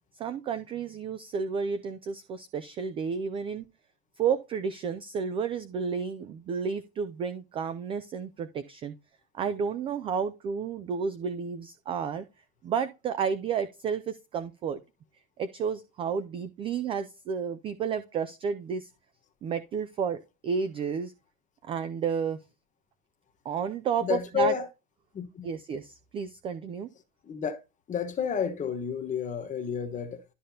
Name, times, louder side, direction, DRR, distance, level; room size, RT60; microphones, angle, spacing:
voice 1, 0.1-3.6 4.2-8.9 9.3-12.3 12.6-14.8 15.4-18.9 19.4-21.1 21.6-22.4 23.4-24.5 25.4-26.9, right 6 dB, 15° right, 0.3 m, -31 dB
voice 2, 24.0-24.7 25.1-25.5 27.2-27.6 27.9-30.2, left 7 dB, 20° left, 1.2 m, -30 dB
12.5 x 5.0 x 2.8 m
supercardioid pair, 135°, 39 cm